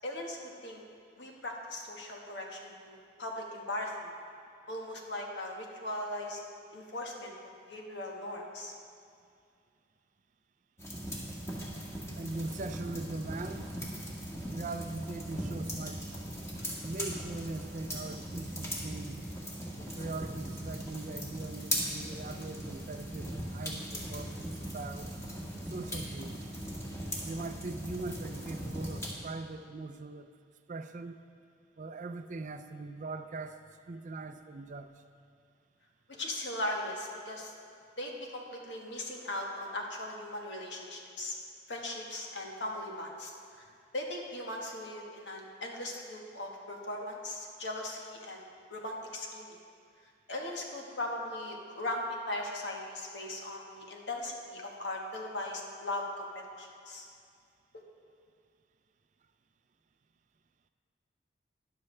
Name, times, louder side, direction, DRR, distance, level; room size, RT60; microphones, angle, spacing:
voice 1, 0.0-0.8 1.2-4.1 4.7-6.4 6.7-7.3 7.7-8.7 36.1-37.5 38.0-41.3 41.7-43.6 43.9-48.4 48.7-49.6 50.3-57.1, left 1 dB, 75° left, 0 dB, 1.5 m, -39 dB
sound 1, 10.8-29.1, equal, 15° left, 1.5 m, -39 dB
voice 2, 12.2-13.8 14.5-16.0 16.8-19.3 20.0-25.1 25.7-26.5 27.2-30.3 30.7-31.2 31.8-33.6 33.9-34.9, right 3 dB, 45° right, 9 dB, 0.4 m, -41 dB
12.5 x 10.5 x 3.3 m, 2.3 s
head